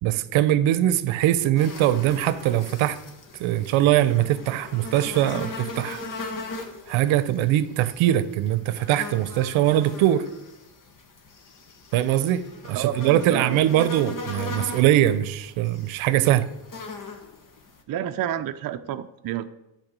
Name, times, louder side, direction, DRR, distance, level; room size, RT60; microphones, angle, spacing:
voice 1, 0.0-3.0 3.4-6.0 6.9-10.3 11.9-16.5, right 12 dB, 80° right, 0.7 m, -22 dB
sound 1, 1.5-17.8, left 3 dB, 40° left, 1.4 m, -39 dB
voice 2, 12.7-13.6 17.9-19.5, right 10 dB, 50° right, 0.6 m, -30 dB
11.0 x 4.4 x 7.4 m
cardioid pair, 125°, 46 cm